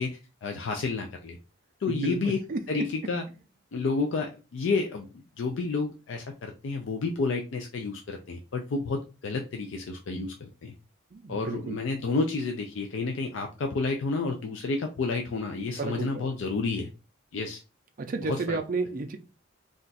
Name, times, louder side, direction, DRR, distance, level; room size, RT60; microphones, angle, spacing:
voice 1, 0.0-1.4 1.8-2.4 2.7-3.2 3.7-10.7 11.3-16.9 17.3-17.6 18.2-18.6, left 3 dB, 60° left, 0.4 m, -30 dB
voice 2, 1.9-2.6 11.1-11.8 15.8-16.3 18.0-19.2, right 3 dB, 40° right, 0.4 m, -32 dB
2.4 x 2.2 x 3.9 m
head